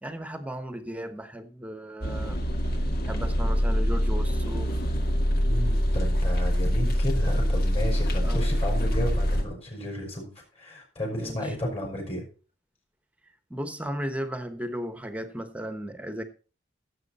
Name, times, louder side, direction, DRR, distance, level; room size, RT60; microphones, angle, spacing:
voice 1, 0.0-2.4 3.0-4.8 8.2-8.5 11.1-11.5 13.5-16.2, equal, 10° right, 1.2 m, -35 dB
sound 1, 2.0-9.4, equal, 55° left, 1.8 m, -25 dB
voice 2, 5.3-10.3 10.6-12.2, equal, 35° left, 4.9 m, -33 dB
15.5 x 7.7 x 4.2 m
head